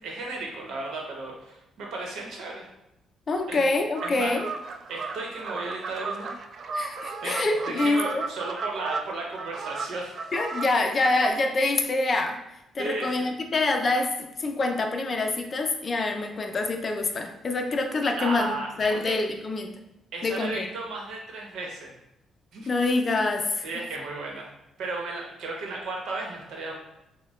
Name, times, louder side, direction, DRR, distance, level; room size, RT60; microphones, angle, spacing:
voice 1, 0.0-2.7 3.5-3.7 4.0-4.4 4.9-6.3 7.2-7.4 7.7-10.1 12.8-13.3 18.2-19.2 20.1-21.9 22.5-22.7 23.6-24.5 24.8-26.8, right 3 dB, 75° right, -1 dB, 1.0 m, -34 dB
voice 2, 3.3-4.5 6.7-8.2 10.3-12.4 12.7-19.8 20.2-20.7 22.7-23.7, left 2 dB, 40° left, 5 dB, 0.5 m, -26 dB
sound 1, 3.9-11.3, right 4 dB, 55° right, 0.3 m, -35 dB
6.1 x 2.2 x 2.4 m, 0.88 s
cardioid pair, 90°, 0 cm